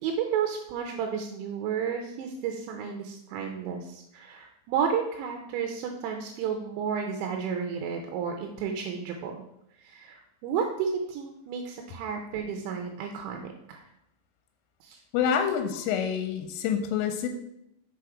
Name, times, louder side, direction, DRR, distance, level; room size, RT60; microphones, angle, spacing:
voice 1, 0.0-9.4 9.8-13.8 14.8-15.0 15.4-15.8, right 7 dB, 80° right, 3 dB, 2.7 m, -32 dB
voice 2, 15.1-17.3, left 8 dB, 85° left, 6 dB, 3.2 m, -27 dB
6.2 x 4.8 x 4.8 m, 0.80 s
omnidirectional pair, 5.7 m